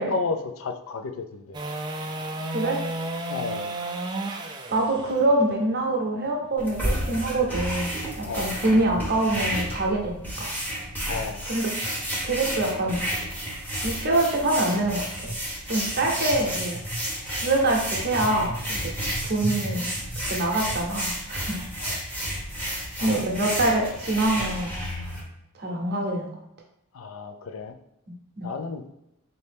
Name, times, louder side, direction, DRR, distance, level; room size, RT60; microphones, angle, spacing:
voice 1, 0.0-1.6 3.3-3.7 8.2-8.6 11.0-11.5 21.8-22.0 22.7-23.2 26.9-27.8 28.4-28.8, left 4 dB, 65° left, 8 dB, 0.4 m, -33 dB
sound 1, 1.5-7.7 14.2-14.3, right 2 dB, 20° right, 0.3 m, -33 dB
voice 2, 2.5-2.8 4.7-10.5 11.5-11.7 12.2-13.0 13.8-15.3 15.7-16.8 17.3-18.9 19.2-19.9 20.3-21.7 23.0-24.8 25.6-26.3 28.4-28.5, right 2 dB, 45° right, 0 dB, 0.8 m, -25 dB
sound 2, 6.6-25.2, equal, 10° left, 0.9 m, -31 dB
4.1 x 2.7 x 3.4 m, 0.85 s
head